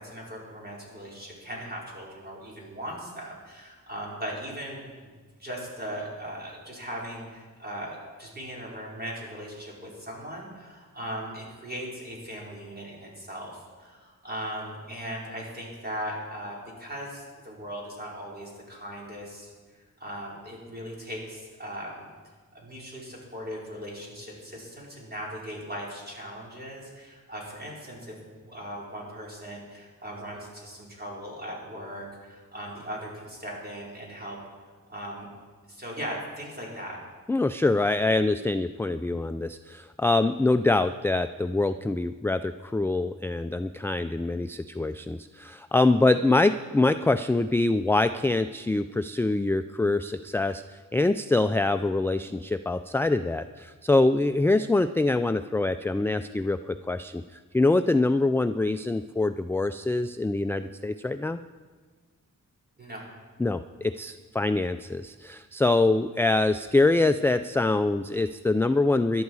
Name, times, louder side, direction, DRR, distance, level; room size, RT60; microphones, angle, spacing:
voice 1, 0.0-5.1 5.4-19.5 20.0-22.1 22.5-34.4 34.9-35.3 35.7-37.0 62.8-63.0, equal, 30° right, -3 dB, 4.9 m, -38 dB
voice 2, 37.3-57.2 57.5-61.4 63.4-69.2, left 2 dB, 5° left, 10 dB, 0.3 m, -24 dB
17.5 x 12.0 x 4.8 m, 1.4 s
cardioid pair, 85°, 35 cm